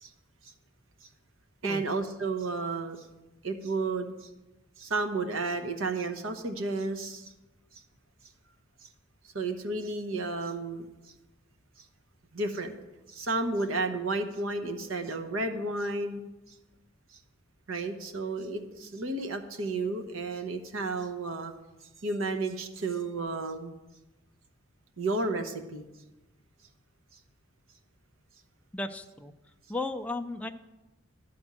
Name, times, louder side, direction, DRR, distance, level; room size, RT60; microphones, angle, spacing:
voice 1, 1.6-3.1 3.4-4.3 4.8-7.3 7.7-7.8 8.8-8.9 9.3-10.9 12.3-12.7 13.1-16.5 17.1-17.2 17.7-21.5 22.0-23.7 25.0-25.8, right 3 dB, 75° right, 6 dB, 0.9 m, -32 dB
voice 2, 28.7-29.3 29.7-30.5, left 2 dB, 5° left, 7 dB, 0.3 m, -34 dB
11.5 x 4.3 x 7.6 m, 1.1 s
head